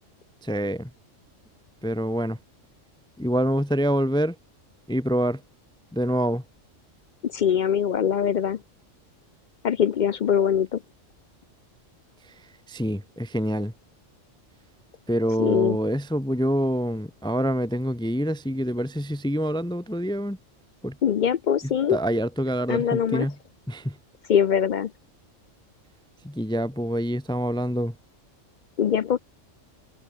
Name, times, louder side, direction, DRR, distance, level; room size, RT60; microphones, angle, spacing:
voice 1, 0.4-0.9 1.8-2.4 3.2-4.4 4.9-5.4 5.9-6.4 12.7-13.7 15.1-20.4 20.8-21.0 21.6-23.4 23.7-24.0 26.2-27.9, equal, 5° left, 0.8 m, -26 dB
voice 2, 7.2-8.6 9.6-10.8 15.4-15.8 21.0-22.0 22.7-23.3 24.3-24.9 28.8-29.2, left 8 dB, 60° left, 0.5 m, -22 dB
omnidirectional pair, 1.3 m